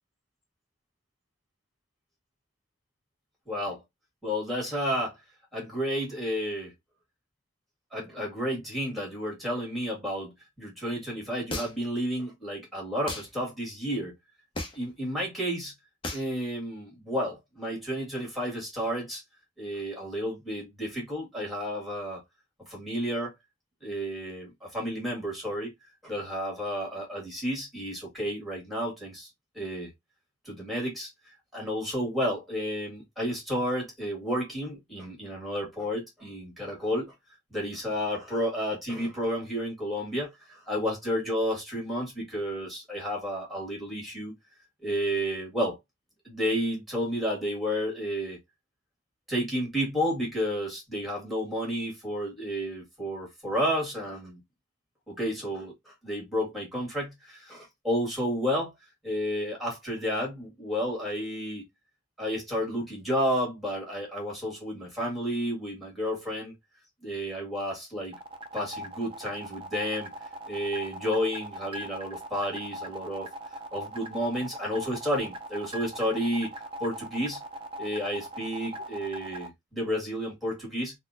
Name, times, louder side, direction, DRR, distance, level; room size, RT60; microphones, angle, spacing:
voice 1, 3.5-3.8 4.2-5.2 5.5-6.7 7.9-10.3 10.6-14.1 14.7-15.7 16.1-19.2 19.6-22.2 22.7-23.3 23.8-25.7 26.0-29.3 29.5-29.9 30.4-31.1 31.5-37.1 37.5-44.3 44.8-45.8 46.2-48.4 49.3-54.4 55.1-58.7 59.0-61.6 62.2-66.5 67.0-68.1 68.5-70.1 70.5-73.3 73.7-77.4 77.8-80.9, equal, ahead, 1.6 m, -31 dB
sound 1, 11.5-12.0 13.1-13.3 14.6-14.9 16.0-16.3, left 2 dB, 30° left, 0.9 m, -35 dB
sound 2, 68.1-79.5, right 1 dB, 30° right, 0.5 m, -40 dB
4.0 x 2.1 x 2.6 m
head